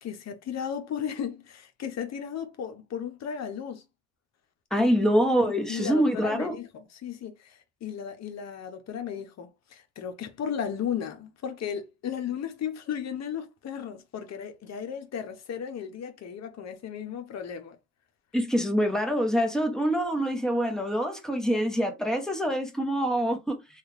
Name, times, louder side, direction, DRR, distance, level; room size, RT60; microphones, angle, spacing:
voice 1, 0.0-3.8 4.8-4.9 5.4-17.8, left 8 dB, 60° left, 0.8 m, -35 dB
voice 2, 4.7-6.5 18.3-23.6, equal, ahead, 1.0 m, -25 dB
3.1 x 2.4 x 3.2 m
cardioid pair, 90°, 30 cm